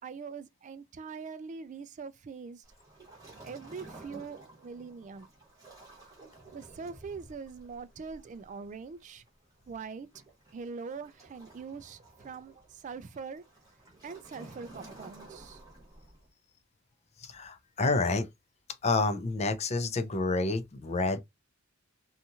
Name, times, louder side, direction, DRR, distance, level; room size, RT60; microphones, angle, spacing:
voice 1, 0.0-2.6 3.4-5.3 6.5-9.2 9.7-10.1 10.5-13.4 14.0-15.6, right 5 dB, 35° right, 0.3 m, -43 dB
Waves surf, 2.6-16.3, right 2 dB, 15° right, 1.0 m, -53 dB
voice 2, 17.2-18.3 18.8-21.2, left 3 dB, 30° left, 0.4 m, -29 dB
2.6 x 2.3 x 2.8 m
head